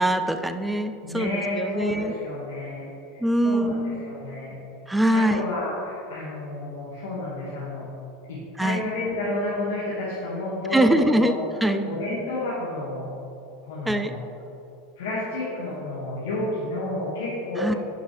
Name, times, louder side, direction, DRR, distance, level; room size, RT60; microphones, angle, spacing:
voice 1, 0.0-1.3 1.6-2.1 3.2-4.1 4.9-5.4 8.6-8.8 10.7-11.3 11.6-11.8 13.9-14.1 17.6-17.7, right 1 dB, 5° right, 9 dB, 0.4 m, -22 dB
voice 2, 1.0-2.9 3.1-4.6 5.1-7.9 8.3-11.4 11.9-13.1 13.6-14.1 15.0-17.8, left 2 dB, 90° left, -8 dB, 1.9 m, -30 dB
10.5 x 6.0 x 3.4 m, 2.8 s
supercardioid pair, 135°, 0 cm